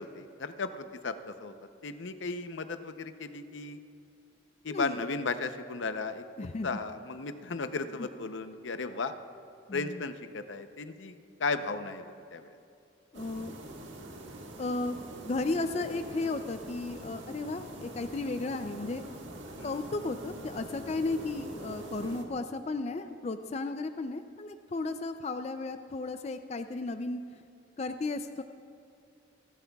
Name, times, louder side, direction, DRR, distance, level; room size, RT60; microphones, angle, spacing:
voice 1, 0.0-1.5 1.8-3.8 4.6-6.2 6.6-9.1 9.7-12.6 19.6-19.8 22.0-22.2, left 4 dB, 80° left, 9 dB, 0.7 m, -35 dB
voice 2, 6.4-6.7 9.7-10.0 13.1-13.6 14.1-14.2 14.6-19.0 19.6-27.2 27.8-28.4, left 3 dB, 35° left, 9 dB, 0.4 m, -34 dB
sound 1, 13.1-22.3, right 1 dB, 85° right, 1.6 m, -44 dB
29.0 x 12.0 x 2.3 m, 2.6 s
head